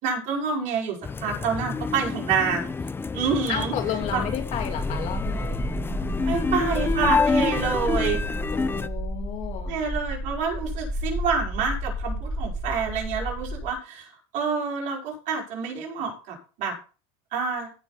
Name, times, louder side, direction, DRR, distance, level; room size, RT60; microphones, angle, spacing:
voice 1, 0.0-2.7 3.1-3.7 4.1-4.2 6.3-8.2 9.7-16.7 17.3-17.7, right 5 dB, 55° right, 0 dB, 5.3 m, -28 dB
sound 1, 1.0-8.9, left 4 dB, 15° left, 0.7 m, -28 dB
voice 2, 3.5-5.7 8.5-9.7, left 9 dB, 50° left, 4 dB, 3.0 m, -32 dB
sound 2, 4.0-13.7, equal, 5° right, 1.2 m, -31 dB
16.5 x 6.2 x 4.1 m, 0.35 s
supercardioid pair, 115°, 15 cm